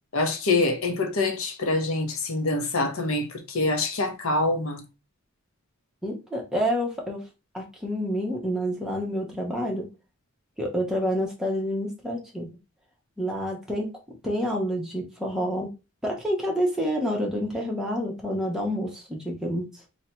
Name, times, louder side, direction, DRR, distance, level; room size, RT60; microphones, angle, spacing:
voice 1, 0.1-4.8, left 2 dB, 70° left, 0.8 m, -25 dB
voice 2, 6.0-7.2 7.5-9.9 10.6-12.5 13.2-13.9 14.2-15.7 16.0-19.7, equal, 5° right, 0.9 m, -28 dB
2.8 x 2.8 x 4.4 m
head